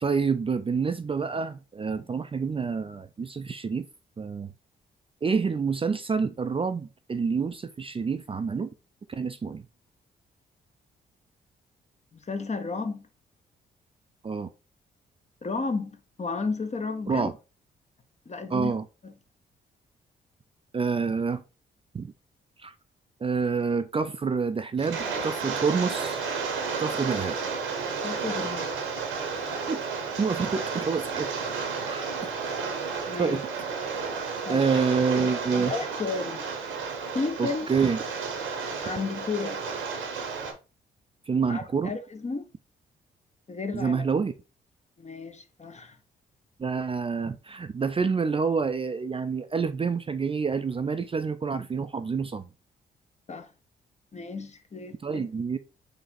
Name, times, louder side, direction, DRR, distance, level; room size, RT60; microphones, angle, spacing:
voice 1, 0.0-3.9 4.2-4.5 5.2-8.7 9.1-9.6 14.2-14.5 17.1-17.3 18.5-18.8 20.7-21.4 21.9-22.1 22.6-22.7 23.2-26.2 26.8-27.4 29.7-29.8 30.2-31.3 31.6-32.1 33.2-33.5 34.5-35.7 37.4-38.0 41.3-41.9 43.7-44.3 46.6-52.4 55.0-55.6, right 5 dB, 25° right, 0.4 m, -27 dB
voice 2, 12.1-13.0 15.4-17.3 18.3-18.7 19.0-19.1 28.0-28.7 33.1-33.4 34.4-34.7 35.5-36.4 37.1-37.6 38.8-39.6 41.5-42.5 43.5-44.1 45.0-46.0 53.3-53.5 54.1-55.3, left 4 dB, 35° left, 0.9 m, -33 dB
Rain, 24.8-40.5, right 5 dB, 75° right, 1.0 m, -32 dB
3.9 x 2.9 x 4.1 m
hypercardioid pair, 45°, 21 cm